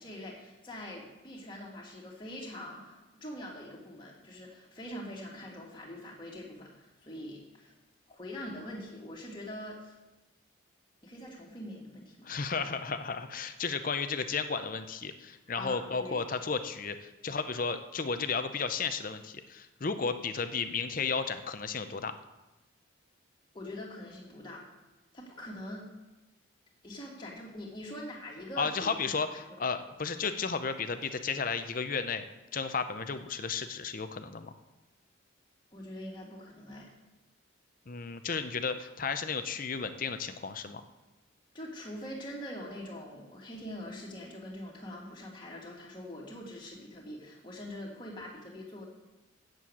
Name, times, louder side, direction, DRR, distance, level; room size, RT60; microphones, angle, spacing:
voice 1, 0.0-7.7 8.1-10.0 11.0-12.3 12.6-12.7 15.5-16.2 23.5-24.7 25.1-25.9 26.8-29.1 29.5-29.6 35.7-36.9 41.5-48.8, left 1 dB, 20° left, -3 dB, 2.1 m, -43 dB
voice 2, 12.2-22.1 28.6-32.2 32.5-34.5 37.9-40.8, left 5 dB, 40° left, 10 dB, 0.6 m, -33 dB
7.7 x 7.3 x 8.5 m, 1.0 s
head